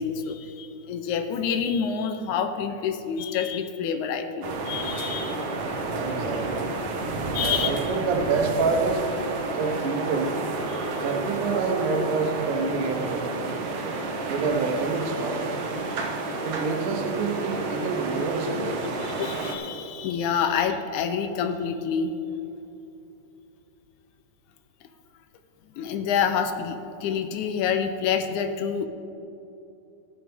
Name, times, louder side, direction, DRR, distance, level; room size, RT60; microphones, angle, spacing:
voice 1, 0.0-6.2 7.3-7.7 10.7-11.1 16.1-16.2 19.0-22.1 25.7-28.9, left 7 dB, 80° left, 8 dB, 2.0 m, -28 dB
sound 1, 4.4-19.6, right 3 dB, 65° right, 1.7 m, -30 dB
voice 2, 5.9-6.7 7.4-9.0 9.5-10.4 11.0-13.6 14.3-15.5 16.4-18.9, right 4 dB, 85° right, 3 dB, 2.7 m, -27 dB
14.0 x 11.0 x 3.5 m, 2.9 s
omnidirectional pair, 3.6 m